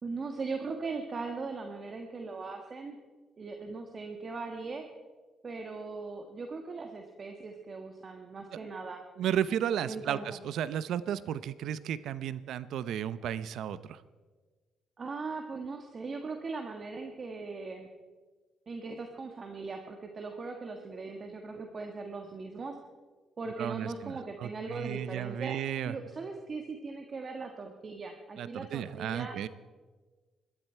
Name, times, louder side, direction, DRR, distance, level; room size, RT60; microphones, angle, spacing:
voice 1, 0.0-3.0 3.4-4.8 5.4-9.0 9.8-10.4 15.0-17.9 18.7-22.8 23.4-29.5, right 4 dB, 40° right, 4 dB, 1.5 m, -39 dB
voice 2, 9.2-14.0 23.6-25.9 28.4-29.5, right 10 dB, 75° right, 16 dB, 0.6 m, -34 dB
21.5 x 12.5 x 4.5 m, 1.4 s
cardioid pair, 90°, 0 cm